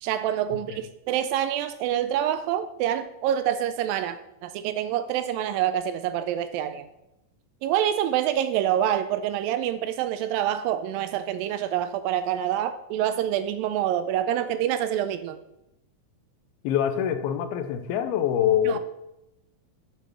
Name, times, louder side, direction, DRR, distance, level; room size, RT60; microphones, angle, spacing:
voice 1, 0.0-6.9 7.6-15.4 18.7-18.8, right 11 dB, 80° right, 11 dB, 2.1 m, -26 dB
voice 2, 16.6-18.8, left 10 dB, 85° left, 9 dB, 2.7 m, -24 dB
7.8 x 6.7 x 6.1 m, 0.89 s
omnidirectional pair, 4.4 m